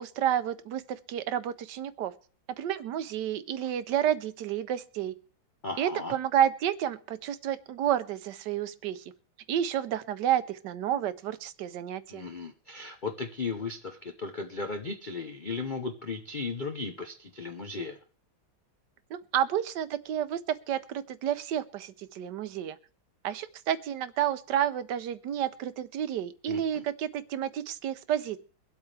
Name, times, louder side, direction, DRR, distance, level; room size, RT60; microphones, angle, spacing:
voice 1, 0.0-2.1 2.6-5.1 5.8-9.0 9.5-12.3 19.1-22.8 23.2-28.4, right 10 dB, 70° right, 14 dB, 1.2 m, -30 dB
voice 2, 5.6-6.1 12.1-18.0 26.5-26.8, left 4 dB, 85° left, 5 dB, 0.4 m, -36 dB
23.5 x 8.1 x 3.3 m, 0.42 s
omnidirectional pair, 2.2 m